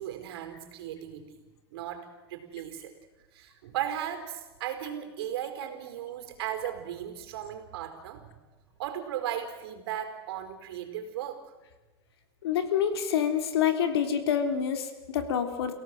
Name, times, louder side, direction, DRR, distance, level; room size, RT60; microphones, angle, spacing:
voice 1, 0.0-1.4 1.7-2.9 3.3-8.3 8.8-11.4, right 10 dB, 75° right, 7 dB, 4.4 m, -36 dB
voice 2, 12.4-15.7, left 8 dB, 85° left, 7 dB, 3.4 m, -27 dB
30.0 x 17.0 x 7.7 m, 1.2 s
supercardioid pair, 130°, 13 cm